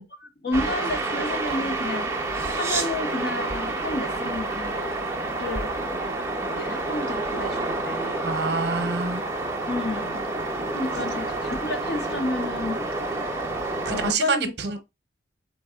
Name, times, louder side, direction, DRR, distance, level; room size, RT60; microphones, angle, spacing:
voice 1, 0.2-2.1 2.5-5.0 5.4-5.8 6.5-8.3 9.7-10.2 10.7-12.8 13.9-14.4, left 2 dB, 55° left, 1.0 m, -31 dB
sound 1, 0.5-14.1, right 2 dB, 15° right, 0.7 m, -29 dB
voice 2, 8.2-9.2 13.8-14.8, right 4 dB, 55° right, 0.7 m, -27 dB
3.8 x 3.5 x 3.7 m
head